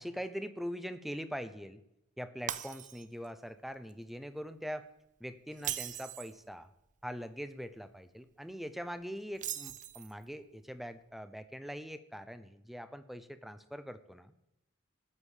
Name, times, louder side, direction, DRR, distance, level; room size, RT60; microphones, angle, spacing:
voice 1, 0.0-1.8 2.2-4.9 5.2-6.7 7.0-14.3, equal, ahead, 12 dB, 0.8 m, -42 dB
Shatter, 2.5-3.3 3.7-3.9 5.5-6.4 9.3-10.2, right 10 dB, 40° right, 0.6 m, -39 dB
13.5 x 10.0 x 7.4 m, 0.85 s
head